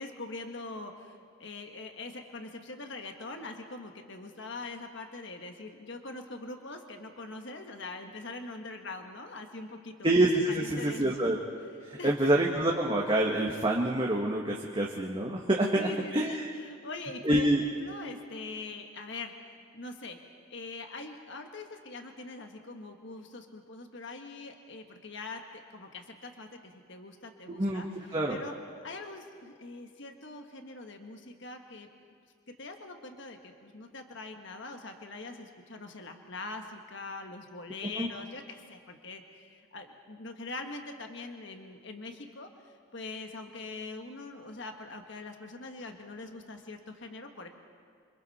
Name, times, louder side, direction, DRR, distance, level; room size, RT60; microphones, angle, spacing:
voice 1, 0.0-9.9 10.5-11.2 11.6-12.5 15.7-20.2 20.5-31.9 32.6-42.5 42.9-47.5, left 3 dB, 55° left, 4 dB, 1.5 m, -43 dB
voice 2, 10.0-11.4 11.8-16.5 17.2-17.6 27.5-27.8 28.1-28.4 38.0-38.1, right 1 dB, 25° right, -2 dB, 1.3 m, -27 dB
27.5 x 25.5 x 4.2 m, 2.1 s
head